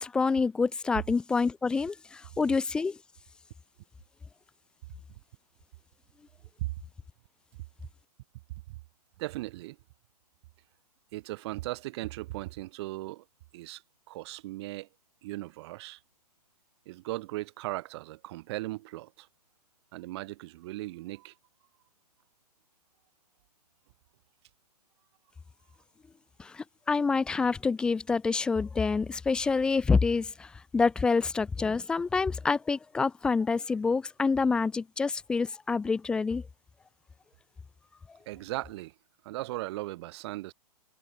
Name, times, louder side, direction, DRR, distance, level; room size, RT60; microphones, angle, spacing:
voice 1, 0.0-3.0 26.4-36.4, left 4 dB, 5° left, 0.3 m, -27 dB
voice 2, 9.2-9.8 11.1-13.2 13.5-13.8 14.1-14.9 15.2-16.0 16.9-19.3 19.9-21.3 38.3-38.9 39.2-40.5, right 18 dB, 40° right, 2.4 m, -37 dB
figure-of-eight pair, 125°, 21 cm